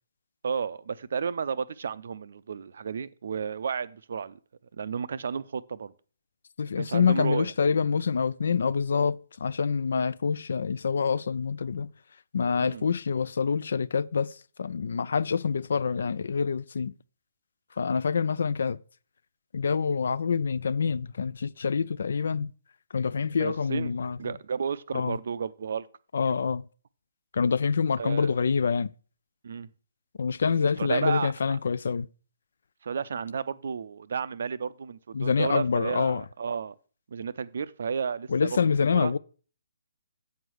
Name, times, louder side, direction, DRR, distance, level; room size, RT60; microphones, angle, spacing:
voice 1, 0.4-4.4 4.7-5.9 6.8-7.5 12.6-12.8 23.4-23.9 24.2-25.9 28.0-28.3 29.4-29.7 30.8-31.3 32.8-36.7 37.1-38.5 38.9-39.1, right 6 dB, 50° right, 0.5 m, -32 dB
voice 2, 6.6-11.9 12.3-16.9 17.8-18.8 19.5-22.5 22.9-24.2 24.9-25.2 26.1-26.7 27.3-28.9 30.2-32.1 35.1-36.2 38.3-39.2, left 5 dB, 55° left, 0.3 m, -26 dB
8.4 x 4.6 x 6.2 m
figure-of-eight pair, 130°, 0 cm